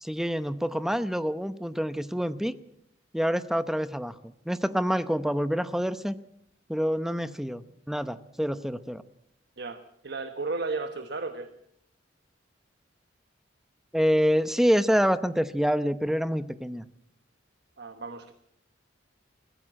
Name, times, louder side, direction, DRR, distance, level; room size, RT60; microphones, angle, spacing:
voice 1, 0.0-2.5 3.1-6.1 6.7-9.0 13.9-16.8, equal, ahead, 12 dB, 0.8 m, -27 dB
voice 2, 9.6-11.5 17.8-18.3, right 3 dB, 55° right, 8 dB, 1.2 m, -34 dB
22.0 x 16.0 x 7.6 m, 0.73 s
head